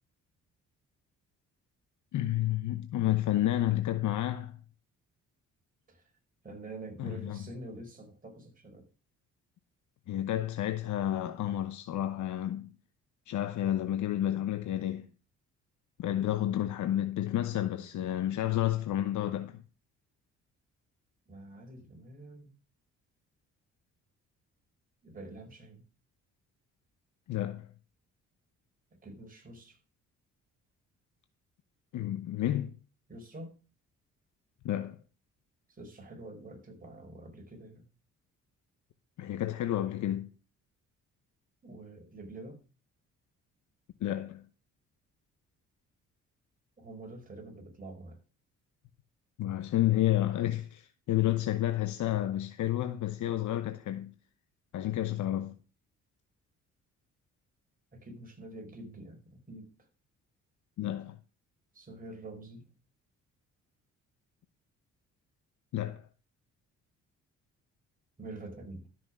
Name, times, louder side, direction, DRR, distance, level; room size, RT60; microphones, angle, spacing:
voice 1, 2.1-4.6 7.0-7.4 10.1-12.7 13.3-15.1 16.0-19.6 27.3-27.7 31.9-32.7 34.6-35.0 39.2-40.3 44.0-44.4 49.4-54.1 54.7-55.6 60.8-61.2 65.7-66.0, left 13 dB, 75° left, 1.0 m, -30 dB
voice 2, 6.4-8.9 21.3-22.5 25.0-25.8 29.0-29.8 33.1-33.6 35.7-37.9 41.6-42.6 46.8-48.2 57.9-59.7 61.7-62.7 68.2-68.9, right 2 dB, 30° right, 4.8 m, -46 dB
13.0 x 6.2 x 6.1 m
cardioid pair, 90°, 30 cm